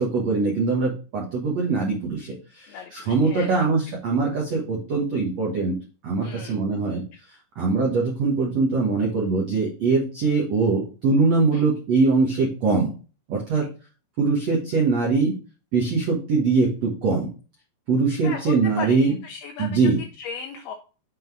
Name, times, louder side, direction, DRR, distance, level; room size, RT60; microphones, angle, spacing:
voice 1, 0.0-5.7 6.0-7.0 7.5-12.9 13.3-13.7 14.2-15.3 15.7-17.3 17.9-19.2 19.6-20.0, right 4 dB, 80° right, -2 dB, 1.5 m, -22 dB
voice 2, 2.7-3.5 6.2-6.6 7.1-7.2 11.5-11.6 13.6-13.7 18.2-19.9 20.2-20.7, left 6 dB, 90° left, 5 dB, 2.2 m, -36 dB
7.7 x 3.9 x 4.7 m, 0.36 s
omnidirectional pair, 5.2 m